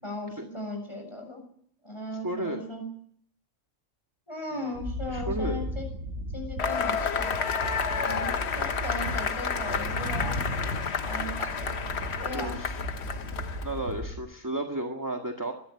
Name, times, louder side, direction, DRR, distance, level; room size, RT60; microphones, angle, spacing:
voice 1, 0.0-1.4 1.8-2.9 4.3-5.9 6.3-7.5 8.0-10.4 11.0-11.8 12.2-12.6, left 1 dB, 20° left, 3 dB, 7.0 m, -37 dB
voice 2, 2.2-2.6 4.5-4.8 5.1-5.6 12.3-12.8 13.6-15.5, right 1 dB, 15° right, 3 dB, 1.8 m, -33 dB
sound 1, 4.7-14.2, equal, 85° right, 4.2 m, -35 dB
Cheering / Applause / Crowd, 6.6-13.8, left 6 dB, 55° left, 1.3 m, -31 dB
21.0 x 12.5 x 10.0 m, 0.65 s
omnidirectional pair, 1.3 m